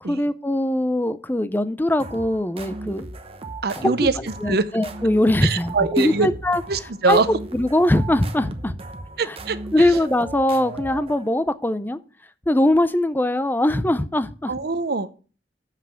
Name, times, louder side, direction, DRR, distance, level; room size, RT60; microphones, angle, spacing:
voice 1, 0.0-3.1 3.8-6.6 7.1-7.2 7.5-8.8 9.2-9.4 9.7-12.0 12.5-14.5, left 1 dB, 10° left, 13 dB, 0.5 m, -21 dB
sound 1, 2.0-11.5, right 2 dB, 35° right, 0.9 m, -37 dB
voice 2, 3.6-4.6 5.4-6.3 6.7-7.3 9.2-9.9 14.5-15.1, right 4 dB, 60° right, 13 dB, 0.7 m, -23 dB
7.3 x 5.7 x 7.5 m, 0.38 s
head